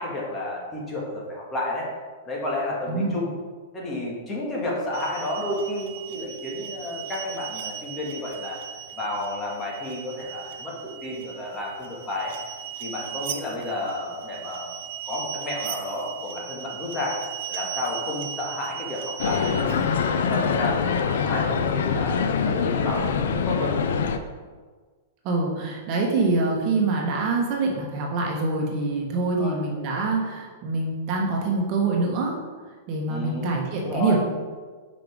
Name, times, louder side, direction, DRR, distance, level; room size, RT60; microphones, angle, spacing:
voice 1, 0.0-1.9 2.2-3.3 3.7-8.6 8.9-12.3 12.8-14.7 15.1-17.2 17.5-19.7 20.1-23.8 29.4-29.6 33.1-33.5 33.8-34.2, left 1 dB, 20° left, -3 dB, 1.8 m, -31 dB
sound 1, 4.9-21.8, right 10 dB, 60° right, 0.5 m, -38 dB
sound 2, 19.2-24.2, left 6 dB, 75° left, 0.5 m, -24 dB
voice 2, 25.2-32.3 32.9-34.2, right 3 dB, 40° right, -1 dB, 1.3 m, -25 dB
5.7 x 5.2 x 3.6 m, 1.4 s
hypercardioid pair, 130°, 0 cm